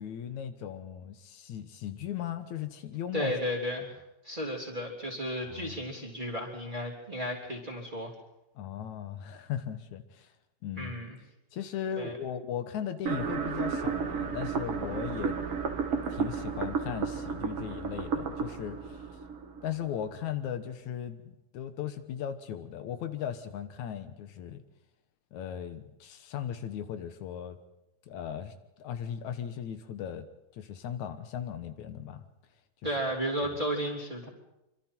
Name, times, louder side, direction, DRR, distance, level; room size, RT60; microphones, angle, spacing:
voice 1, 0.0-3.3 5.5-5.8 8.6-10.3 10.6-10.9 11.5-15.4 16.1-19.0 19.6-24.6 25.3-27.6 28.1-30.3 30.5-32.3 33.4-33.6, left 9 dB, 80° left, 9 dB, 2.5 m, -37 dB
voice 2, 3.1-8.1 10.7-11.2 12.0-12.2 32.8-34.3, equal, 15° right, -1 dB, 3.4 m, -33 dB
sound 1, 13.1-20.1, right 6 dB, 55° right, 2.6 m, -33 dB
26.0 x 24.5 x 4.5 m, 0.92 s
omnidirectional pair, 3.3 m